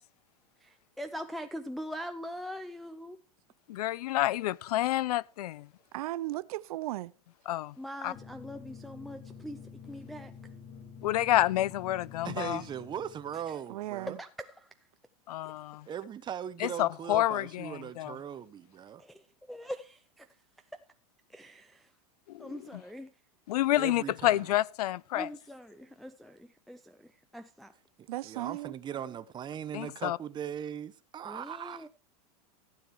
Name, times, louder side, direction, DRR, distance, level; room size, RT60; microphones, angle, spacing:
voice 1, 0.6-3.2 7.8-10.3 13.5-13.6 14.2-14.7 19.0-20.3 21.3-21.9 22.4-23.1 25.1-27.7 31.2-31.9, equal, ahead, 0.5 m, -43 dB
voice 2, 3.7-5.7 7.5-7.7 8.0-8.1 11.0-12.6 15.3-15.9 16.6-18.2 22.3-22.5 23.5-25.3 29.7-30.2, left 15 dB, 80° left, 0.5 m, -29 dB
voice 3, 5.9-7.1 13.7-14.2 28.1-28.8, right 16 dB, 75° right, 0.5 m, -36 dB
sound 1, 8.1-13.5, left 6 dB, 45° left, 3.0 m, -49 dB
voice 4, 12.2-14.2 15.9-19.0 23.7-24.5 28.0-31.9, right 9 dB, 25° right, 0.9 m, -39 dB
15.0 x 7.5 x 4.6 m
supercardioid pair, 130°, 19 cm